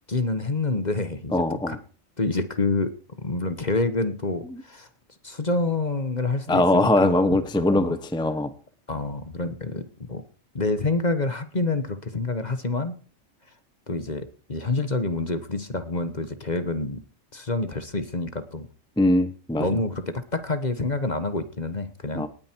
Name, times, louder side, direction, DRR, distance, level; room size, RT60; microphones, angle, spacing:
voice 1, 0.1-1.8 2.2-2.9 3.2-4.9 5.2-8.0 8.9-10.2 10.5-12.9 13.9-17.0 17.3-18.7 19.6-22.3, left 3 dB, 35° left, 11 dB, 1.3 m, -27 dB
voice 2, 1.3-1.8 4.5-4.6 6.5-8.5 19.0-19.8 22.1-22.3, left 1 dB, 5° left, 11 dB, 0.9 m, -21 dB
18.5 x 9.5 x 4.6 m, 0.40 s
omnidirectional pair, 1.4 m